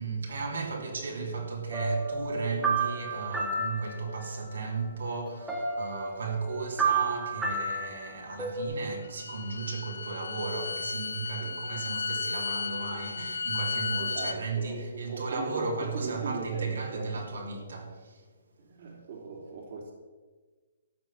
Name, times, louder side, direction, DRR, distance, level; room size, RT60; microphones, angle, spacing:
voice 1, 0.0-18.2, right 4 dB, 80° right, 3.1 m, -35 dB
voice 2, 0.7-1.5 11.4-11.6 14.0-17.4 18.6-19.9, right 3 dB, 45° right, 2.9 m, -39 dB
sound 1, 1.7-4.5 4.9-5.0 5.3-8.6, right 4 dB, 5° right, 1.9 m, -32 dB
Bowed string instrument, 9.0-14.4, left 4 dB, 90° left, 1.2 m, -34 dB
13.0 x 6.2 x 8.9 m
hypercardioid pair, 165°, 0 cm